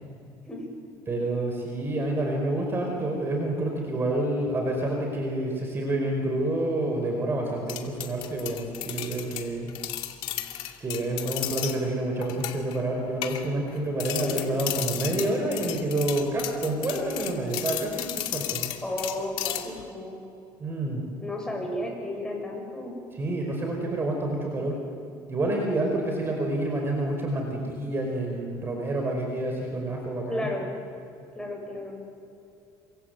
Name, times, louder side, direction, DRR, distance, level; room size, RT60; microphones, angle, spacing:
voice 1, 1.1-9.7 10.8-18.7 20.6-21.1 23.1-24.8 25.3-30.5, right 1 dB, 25° right, 2 dB, 5.0 m, -28 dB
sound 1, 7.7-11.8 12.2-12.8 13.2-13.7 14.0-19.8, left 13 dB, 70° left, 2.6 m, -33 dB
voice 2, 14.2-14.7 18.8-20.2 21.2-23.0 30.3-30.7 31.3-31.9, left 1 dB, 10° left, 0 dB, 7.9 m, -33 dB
28.5 x 25.5 x 8.1 m, 2.7 s
cardioid pair, 135°, 9 cm